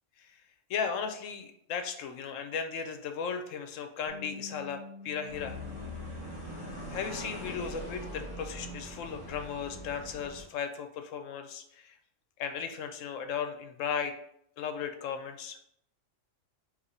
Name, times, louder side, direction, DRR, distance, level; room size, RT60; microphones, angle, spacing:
voice 1, 0.7-5.6 6.9-12.0 12.4-14.1 14.6-15.6, left 6 dB, 80° left, 7 dB, 0.9 m, -36 dB
Bass guitar, 4.1-8.8 9.1-10.3, left 3 dB, 75° right, 1.3 m, -50 dB
sound 1, 5.3-10.4, equal, 30° left, 1.7 m, -42 dB
4.0 x 2.9 x 4.0 m, 0.71 s
omnidirectional pair, 1.3 m